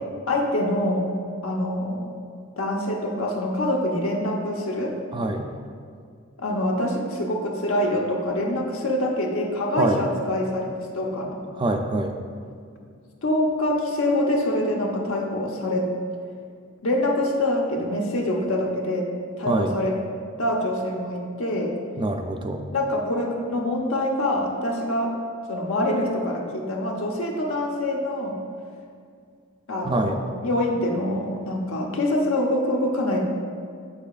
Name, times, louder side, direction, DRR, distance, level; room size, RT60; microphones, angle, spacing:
voice 1, 0.3-1.1 1.4-2.1 2.6-5.0 6.4-11.4 13.2-15.9 16.8-19.1 19.4-20.0 20.4-21.7 22.7-25.2 25.5-28.4 29.7-33.2, left 1 dB, 75° left, 1 dB, 0.9 m, -25 dB
voice 2, 5.1-5.5 9.8-10.0 11.5-12.1 19.5-19.7 22.0-22.7 29.8-30.2, right 2 dB, 25° right, 4 dB, 0.3 m, -25 dB
7.4 x 6.9 x 2.4 m, 2.2 s
head